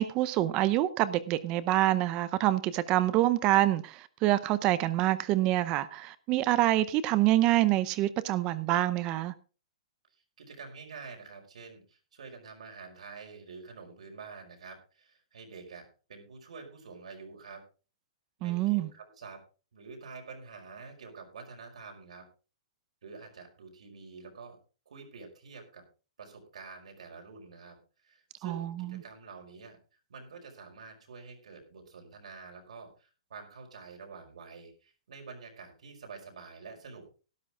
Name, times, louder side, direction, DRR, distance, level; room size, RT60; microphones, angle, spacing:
voice 1, 0.0-9.3 18.4-18.9 28.4-29.0, right 15 dB, 25° right, 0.6 m, -26 dB
voice 2, 10.1-17.6 18.4-19.4 19.7-22.3 23.0-24.6 24.8-25.8 26.2-29.8 30.1-37.1, right 4 dB, 85° right, 5.1 m, -48 dB
12.5 x 11.5 x 3.7 m
hypercardioid pair, 170°, 4 cm